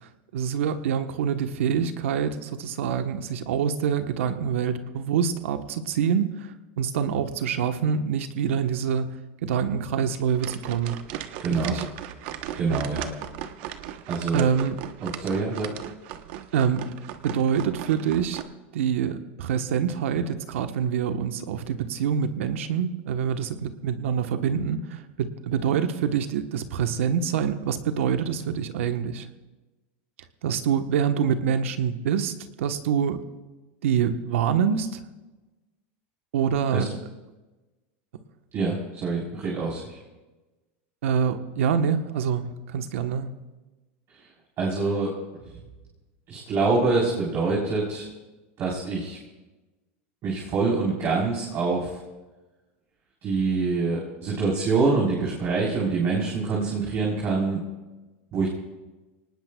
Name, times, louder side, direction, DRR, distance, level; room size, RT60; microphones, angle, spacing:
voice 1, 0.3-6.5 6.8-9.2 9.4-11.0 11.5-11.8 12.7-12.8 14.3-14.8 16.5-17.0 17.2-18.4 18.7-29.3 30.4-32.3 32.6-33.2 33.8-35.0 36.3-36.9 41.0-43.3, right 7 dB, 90° right, 8 dB, 1.2 m, -26 dB
sound 1, 10.3-18.4, right 11 dB, 60° right, 1.0 m, -37 dB
voice 2, 11.4-11.8 12.6-13.1 14.1-14.5 15.0-15.7 36.7-36.9 38.5-40.0 44.6-45.1 46.3-48.1 48.6-49.2 50.2-51.9 53.2-57.6 58.3-58.5, right 4 dB, 35° right, -4 dB, 4.0 m, -25 dB
24.5 x 19.0 x 2.3 m, 1.2 s
supercardioid pair, 140°, 7 cm